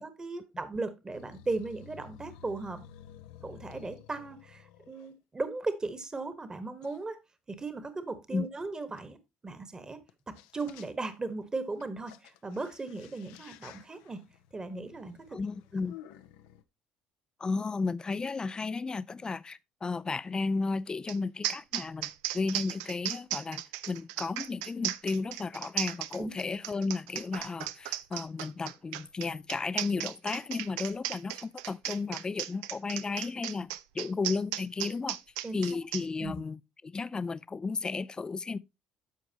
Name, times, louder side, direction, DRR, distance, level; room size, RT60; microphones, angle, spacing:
voice 1, 0.0-2.8 3.4-7.2 7.5-9.2 9.4-10.0 10.3-14.2 14.5-15.2 26.2-26.3 35.4-35.6 36.2-36.4, right 3 dB, 25° right, 1.4 m, -37 dB
sound 1, 1.1-5.1 5.9-6.0 6.8-7.0 9.0-9.1 10.1-10.2 10.4-11.2 11.6-16.6, left 12 dB, 85° left, 0.6 m, -53 dB
voice 2, 15.3-16.0 17.4-35.2 35.5-38.6, left 4 dB, 25° left, 0.4 m, -34 dB
sound 2, 21.1-21.2 21.4-36.0, right 14 dB, 80° right, 0.4 m, -36 dB
13.0 x 4.8 x 2.9 m
hypercardioid pair, 70°, 3 cm